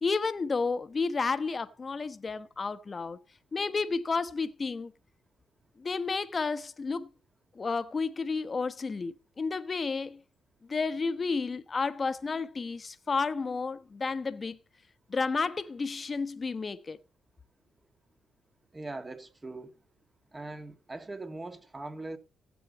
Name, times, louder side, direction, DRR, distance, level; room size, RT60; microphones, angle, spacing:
voice 1, 0.0-3.2 3.5-4.9 5.8-7.1 7.6-10.2 10.7-14.6 15.1-17.0, left 4 dB, 35° left, 1.1 m, -31 dB
voice 2, 18.7-19.7 20.3-22.2, right 2 dB, 20° right, 2.0 m, -41 dB
16.5 x 8.3 x 4.2 m
cardioid pair, 90°, 0 cm